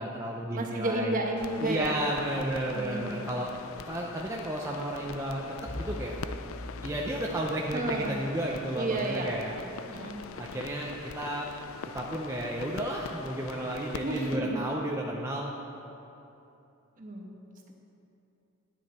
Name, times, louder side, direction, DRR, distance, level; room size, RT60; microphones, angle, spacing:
voice 1, 0.0-1.2 1.6-3.5 3.8-6.2 6.8-9.5 10.4-11.5 11.9-15.5, right 1 dB, 15° right, -3 dB, 0.6 m, -33 dB
voice 2, 0.5-2.0 2.7-3.1 7.7-8.2 8.7-9.3 9.9-10.2 14.0-14.6 17.0-17.3, right 2 dB, 40° right, 1 dB, 1.1 m, -31 dB
sound 1, 1.4-14.4, left 6 dB, 80° left, 0.4 m, -43 dB
Bowed string instrument, 5.6-10.7, left 1 dB, 50° left, 2.3 m, -44 dB
10.0 x 9.4 x 4.3 m, 2.9 s
head